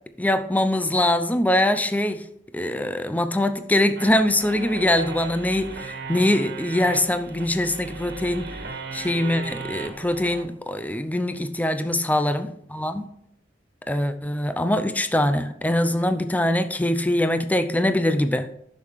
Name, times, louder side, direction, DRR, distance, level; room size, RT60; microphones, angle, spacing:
voice 1, 0.2-2.2 2.5-8.5 8.9-13.1 13.9-18.5, left 1 dB, 10° left, 10 dB, 0.6 m, -23 dB
sound 1, 4.0-10.4, right 4 dB, 60° right, 1.7 m, -37 dB
11.0 x 6.6 x 4.7 m, 0.72 s
head